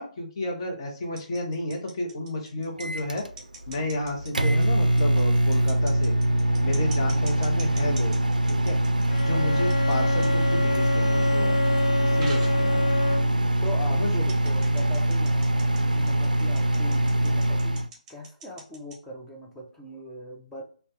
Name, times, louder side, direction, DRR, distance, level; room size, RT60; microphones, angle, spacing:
voice 1, 0.0-3.2 3.7-6.1 6.6-8.1 8.5-8.8 9.2-11.6 12.0-13.0 13.9-14.4, left 2 dB, 35° left, 2 dB, 0.8 m, -32 dB
sound 1, 1.0-9.2 9.5-9.9 10.2-10.3 11.1-11.2 12.2-12.6 13.1-13.2 13.5-13.7 14.3-19.0, right 3 dB, 15° right, 0.9 m, -43 dB
Microwave oven, 2.8-17.9, right 1 dB, 80° right, 0.3 m, -23 dB
Bowed string instrument, 9.1-13.5, left 3 dB, 60° left, 0.5 m, -28 dB
voice 2, 13.6-20.6, equal, 5° left, -3 dB, 0.4 m, -41 dB
3.2 x 2.2 x 2.7 m, 0.41 s
figure-of-eight pair, 140°, 4 cm